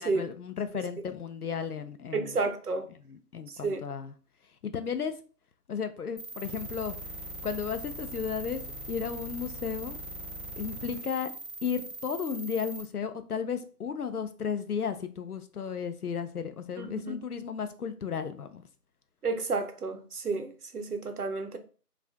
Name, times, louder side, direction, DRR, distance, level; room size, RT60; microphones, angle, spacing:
voice 1, 0.0-2.4 3.0-4.1 4.6-5.1 5.7-6.9 7.4-8.6 8.9-10.0 10.5-11.3 11.6-18.6, left 7 dB, 70° left, 0.6 m, -34 dB
voice 2, 2.1-2.9 3.6-3.8 16.8-17.2 19.2-21.6, right 3 dB, 70° right, 0.7 m, -31 dB
sound 1, 6.2-12.8, right 1 dB, ahead, 0.4 m, -41 dB
2.6 x 2.4 x 3.4 m
figure-of-eight pair, 175°, 47 cm